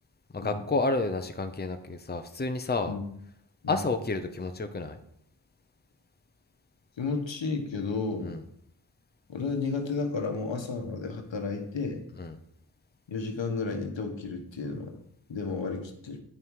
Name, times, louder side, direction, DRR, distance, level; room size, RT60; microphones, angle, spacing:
voice 1, 0.3-2.9 3.7-5.0 8.2-8.4 12.2-12.3, left 3 dB, 20° left, 7 dB, 0.8 m, -30 dB
voice 2, 7.0-8.4 9.3-12.0 13.1-15.0 15.3-16.2, left 4 dB, 90° left, 4 dB, 1.4 m, -32 dB
9.6 x 5.5 x 4.8 m, 0.70 s
wide cardioid pair, 65°, 44 cm